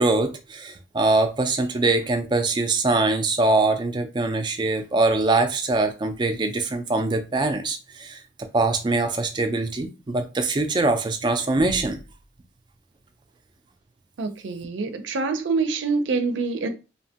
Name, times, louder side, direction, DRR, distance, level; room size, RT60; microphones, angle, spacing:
voice 1, 0.0-8.2 8.5-12.0, right 2 dB, 25° right, 0.3 m, -23 dB
voice 2, 14.2-16.7, right 4 dB, 85° right, 0.5 m, -25 dB
2.8 x 2.1 x 2.7 m
head